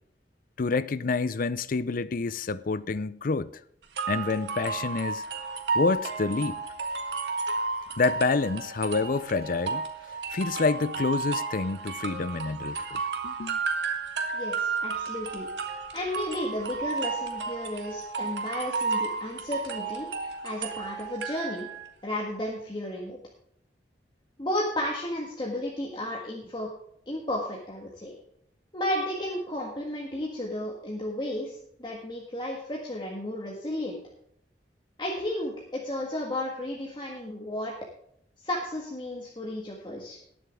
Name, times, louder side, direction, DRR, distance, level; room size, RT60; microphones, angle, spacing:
voice 1, 0.6-3.5 4.1-5.2 5.7-6.6 8.0-13.6, left 4 dB, 50° left, 0.5 m, -28 dB
sound 1, 4.0-21.9, right 4 dB, 75° right, 1.6 m, -32 dB
voice 2, 14.3-15.5 15.9-20.1 20.4-21.7 22.0-23.2 24.4-26.7 27.1-28.2 28.7-34.0 35.0-37.7 38.4-40.2, left 1 dB, 25° left, 1.7 m, -33 dB
19.5 x 7.2 x 3.6 m
head